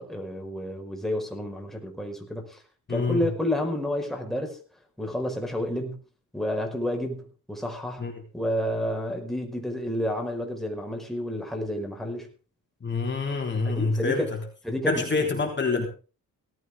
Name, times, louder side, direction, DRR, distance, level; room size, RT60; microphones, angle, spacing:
voice 1, 0.0-2.6 2.9-4.6 5.0-6.0 6.3-8.0 8.3-12.3 13.7-14.3 14.6-15.4, left 1 dB, ahead, 2 dB, 5.3 m, -30 dB
voice 2, 2.9-3.2 8.0-8.1 12.8-14.3 14.9-15.9, left 4 dB, 30° left, 2 dB, 3.5 m, -26 dB
17.5 x 15.5 x 3.8 m, 0.35 s
cardioid pair, 115°, 34 cm